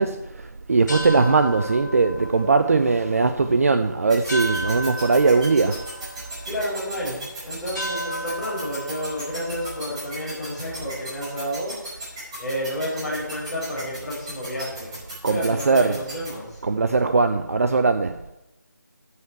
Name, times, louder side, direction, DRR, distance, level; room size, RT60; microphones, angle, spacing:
voice 1, 0.0-5.8 15.2-16.0 16.6-18.2, right 4 dB, 45° right, 0.6 m, -20 dB
sound 1, 0.7-11.2, equal, 65° left, 2.2 m, -35 dB
sound 2, 4.1-16.3, right 2 dB, 20° right, 4.7 m, -36 dB
voice 2, 6.4-16.6, equal, ahead, 4.3 m, -31 dB
12.5 x 8.4 x 4.6 m
figure-of-eight pair, 170°, 10 cm